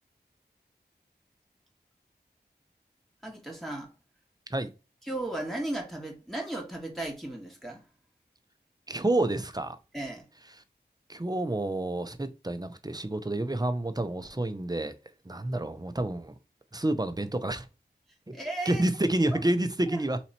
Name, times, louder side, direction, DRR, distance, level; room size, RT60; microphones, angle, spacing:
voice 1, 3.2-3.9 5.1-7.8 9.9-10.3 18.3-18.8, right 1 dB, ahead, 1.5 m, -35 dB
voice 2, 8.9-9.8 11.1-14.9 15.2-16.4 16.7-17.7 18.3-18.4 18.6-20.2, right 1 dB, 20° right, 0.7 m, -29 dB
3.9 x 3.0 x 4.2 m
wide cardioid pair, 45°, 18 cm